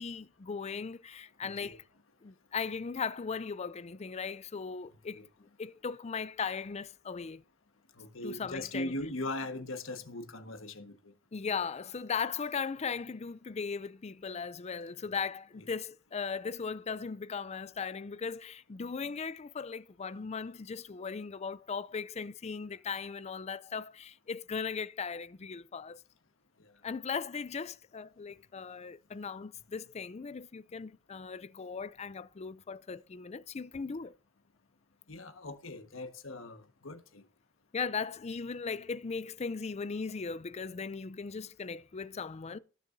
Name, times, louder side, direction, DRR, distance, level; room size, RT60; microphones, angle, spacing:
voice 1, 0.0-1.8 2.2-7.4 8.2-8.9 11.3-26.0 26.8-34.1 37.7-42.6, left 5 dB, 35° left, 0.5 m, -38 dB
voice 2, 1.4-1.8 5.1-5.3 8.0-11.1 15.1-15.2 26.6-26.7 35.1-37.2, left 2 dB, 90° left, 1.5 m, -40 dB
19.0 x 6.8 x 2.7 m
head